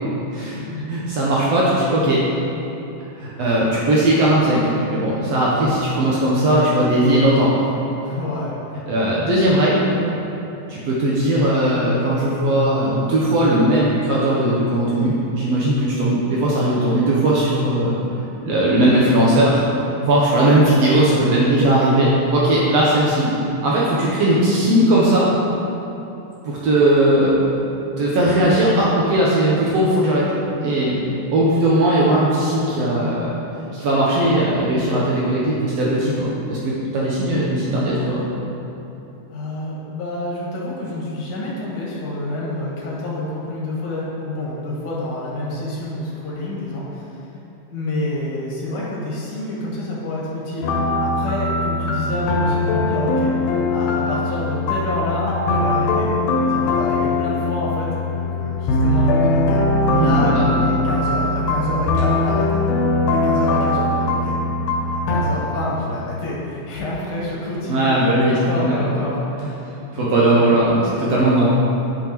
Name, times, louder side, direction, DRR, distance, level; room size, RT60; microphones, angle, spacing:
voice 1, 0.3-2.2 3.1-7.5 8.9-9.8 10.7-17.9 18.4-19.6 20.0-23.3 23.6-25.3 26.4-27.3 28.0-30.2 30.6-31.0 31.3-33.3 33.7-38.2 59.9-60.5 67.7-68.9 69.4-69.5 69.9-71.5, right 1 dB, 70° right, -6 dB, 1.6 m, -18 dB
voice 2, 8.0-8.6 23.0-23.2 37.9-38.3 39.3-47.2 47.7-53.3 53.7-56.1 56.5-59.6 60.0-62.6 63.1-64.4 64.9-69.2 69.9-70.6, left 1 dB, 55° left, -6 dB, 2.0 m, -28 dB
sound 1, 50.6-65.2, left 2 dB, 85° left, 2.3 m, -20 dB
9.0 x 5.6 x 3.0 m, 2.9 s
omnidirectional pair, 3.6 m